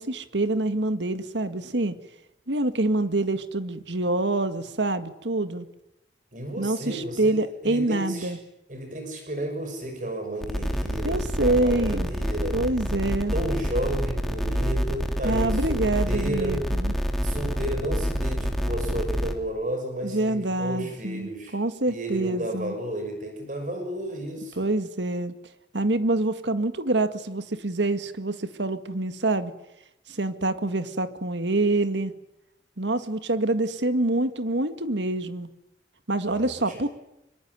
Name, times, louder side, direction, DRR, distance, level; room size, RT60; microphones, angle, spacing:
voice 1, 0.0-2.0 2.5-5.7 6.6-8.4 11.0-12.1 12.5-13.3 15.2-16.9 20.0-22.7 24.6-25.4 25.7-29.5 30.1-32.1 32.8-35.5 36.1-36.9, right 2 dB, 85° right, 10 dB, 2.0 m, -26 dB
voice 2, 6.3-7.3 7.6-8.3 8.7-12.6 13.3-16.6 17.2-21.6 21.9-24.7 36.2-36.9, right 1 dB, 45° right, 5 dB, 6.3 m, -32 dB
sound 1, 10.4-19.3, equal, ahead, 3.2 m, -27 dB
25.5 x 24.0 x 9.6 m, 0.86 s
head